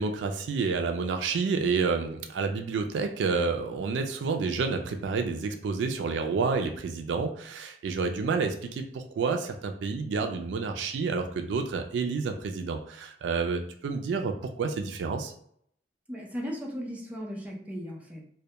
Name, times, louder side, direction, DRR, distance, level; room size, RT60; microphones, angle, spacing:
voice 1, 0.0-15.3, right 4 dB, 85° right, 5 dB, 0.3 m, -29 dB
voice 2, 16.1-18.3, equal, 10° right, -3 dB, 0.5 m, -36 dB
2.1 x 2.1 x 2.8 m, 0.67 s
head